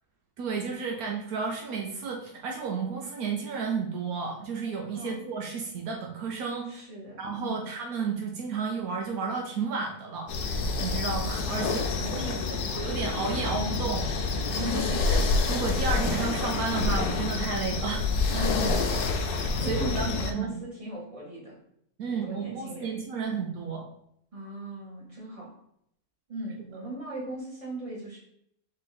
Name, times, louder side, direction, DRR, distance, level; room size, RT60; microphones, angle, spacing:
voice 1, 0.4-6.8 7.2-11.7 12.1-12.4 12.7-14.1 14.9-15.2 15.5-18.5 19.7-20.6 22.0-23.9, right 5 dB, 75° right, 0 dB, 1.1 m, -32 dB
voice 2, 6.7-7.7 11.5-12.8 14.6-15.1 18.3-18.9 19.6-21.6 22.1-23.0 24.3-25.5 26.3-28.2, right 1 dB, 20° right, -6 dB, 1.7 m, -38 dB
sound 1, 10.3-20.3, left 4 dB, 90° left, 1.2 m, -28 dB
3.9 x 3.1 x 4.1 m, 0.72 s
omnidirectional pair, 1.6 m